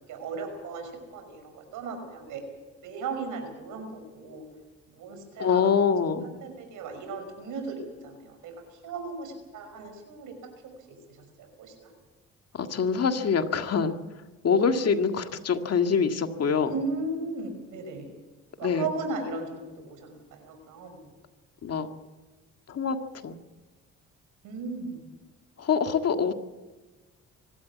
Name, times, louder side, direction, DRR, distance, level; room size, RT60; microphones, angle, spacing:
voice 1, 0.1-2.4 2.8-4.5 4.9-5.7 6.2-10.4 11.1-11.9 16.6-18.1 18.6-21.1 24.4-25.0, right 3 dB, 90° right, 5 dB, 5.7 m, -36 dB
voice 2, 5.4-6.3 12.6-13.9 14.4-16.7 18.6-18.9 21.6-21.9 22.7-23.0 23.2-23.4 25.6-26.3, left 6 dB, 55° left, 6 dB, 1.9 m, -24 dB
25.0 x 13.0 x 9.4 m, 1.2 s
cardioid pair, 90°, 30 cm